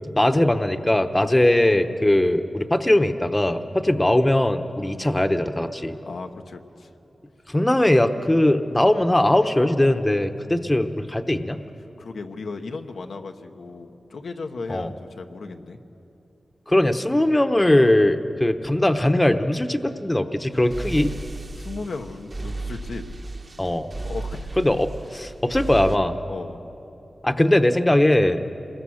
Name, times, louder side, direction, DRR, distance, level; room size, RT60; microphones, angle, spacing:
voice 1, 0.1-6.0 7.5-11.6 14.7-14.9 16.7-21.1 23.6-23.9 24.6-26.1 27.2-28.5, left 1 dB, 15° left, 8 dB, 1.0 m, -20 dB
voice 2, 6.0-6.9 10.4-10.6 12.0-15.8 21.6-23.0 24.0-24.6 26.3-26.6, left 4 dB, 90° left, 5 dB, 1.2 m, -36 dB
sound 1, 20.5-26.0, right 2 dB, 40° right, 1.4 m, -34 dB
27.5 x 21.0 x 6.5 m, 2.8 s
wide cardioid pair, 80°, 0 cm